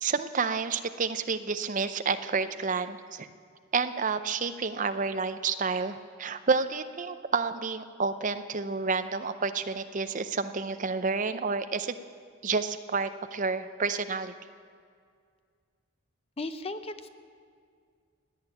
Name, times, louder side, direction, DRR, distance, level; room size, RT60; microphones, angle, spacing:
voice 1, 0.0-3.3 3.7-12.0 12.4-14.3, right 4 dB, 35° right, 10 dB, 0.6 m, -30 dB
voice 2, 16.4-17.1, left 2 dB, 25° left, 10 dB, 0.6 m, -36 dB
17.5 x 9.0 x 9.2 m, 2.1 s
head